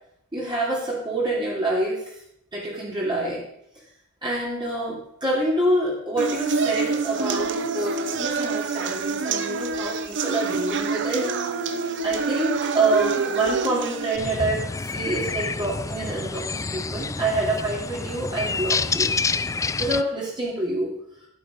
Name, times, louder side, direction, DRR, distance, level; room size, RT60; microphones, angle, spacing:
voice 1, 0.3-2.1 2.5-3.4 4.2-11.7 12.0-19.1 19.8-20.9, right 2 dB, 20° right, -5 dB, 3.0 m, -26 dB
sound 1, 6.2-14.2, right 4 dB, 55° right, 0.9 m, -27 dB
sound 2, 14.2-20.0, left 4 dB, 15° left, 0.3 m, -28 dB
12.0 x 8.0 x 5.4 m, 0.73 s
head